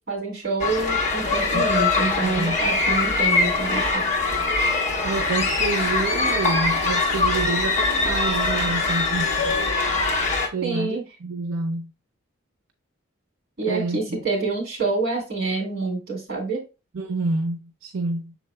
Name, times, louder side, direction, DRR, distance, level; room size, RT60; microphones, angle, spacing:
voice 1, 0.1-4.0 10.6-11.0 13.6-16.6, right 3 dB, 50° right, 2.3 m, -27 dB
sound 1, 0.6-10.5, left 3 dB, 35° left, 1.1 m, -22 dB
voice 2, 2.2-2.6 5.0-9.5 10.5-11.9 13.7-14.2 16.9-18.4, right 3 dB, 90° right, 0.6 m, -28 dB
6.2 x 3.8 x 2.2 m
head